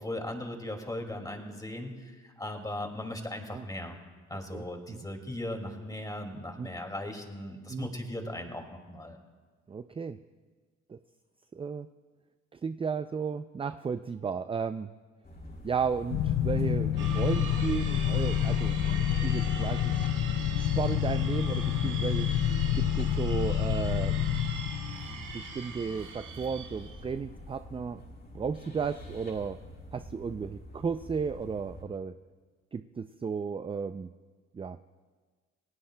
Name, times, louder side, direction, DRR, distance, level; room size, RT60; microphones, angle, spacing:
voice 1, 0.0-3.9 4.3-9.2, left 1 dB, 10° left, 3 dB, 2.2 m, -38 dB
voice 2, 4.5-5.0 6.6-6.7 7.7-7.9 9.7-10.2 10.9-11.0 11.5-11.9 12.5-14.9 15.6-18.8 19.2-19.9 20.6-22.3 22.7-24.2 25.1-28.0 28.3-29.6 29.9-32.1 32.7-34.1 34.5-34.8, right 6 dB, 20° right, 10 dB, 0.3 m, -34 dB
sound 1, 15.2-31.8, left 1 dB, 35° left, 5.5 m, -47 dB
sound 2, 16.1-25.7, left 10 dB, 60° left, 0.5 m, -28 dB
sound 3, 17.0-27.0, right 5 dB, 85° right, 2.0 m, -42 dB
27.0 x 18.5 x 2.2 m, 1.4 s
cardioid pair, 90°, 30 cm